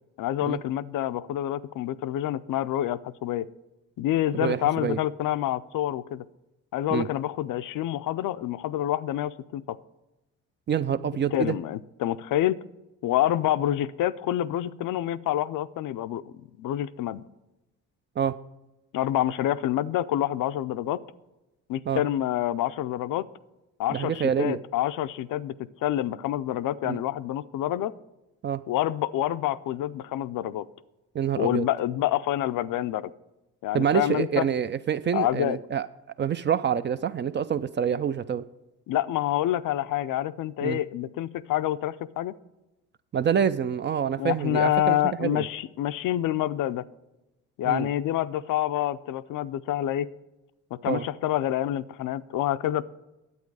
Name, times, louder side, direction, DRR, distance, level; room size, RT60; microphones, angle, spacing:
voice 1, 0.2-3.5 4.0-6.2 6.7-9.8 11.3-12.6 13.0-17.2 18.9-21.0 21.7-23.3 23.8-25.5 25.8-27.9 28.7-30.6 31.4-33.1 33.6-34.4 35.1-35.6 38.9-42.3 44.2-46.8 47.6-50.1 50.8-52.8, left 13 dB, 60° left, 14 dB, 0.5 m, -27 dB
voice 2, 4.3-5.0 6.9-7.1 10.7-11.5 18.2-18.3 21.9-22.0 23.9-24.6 26.8-27.0 28.4-28.6 31.1-31.7 33.7-35.9 36.2-38.4 40.6-40.8 43.1-45.5 47.6-47.9 50.9-51.1, right 8 dB, 30° right, 13 dB, 0.4 m, -26 dB
9.6 x 8.1 x 4.7 m, 0.98 s
supercardioid pair, 75°, 36 cm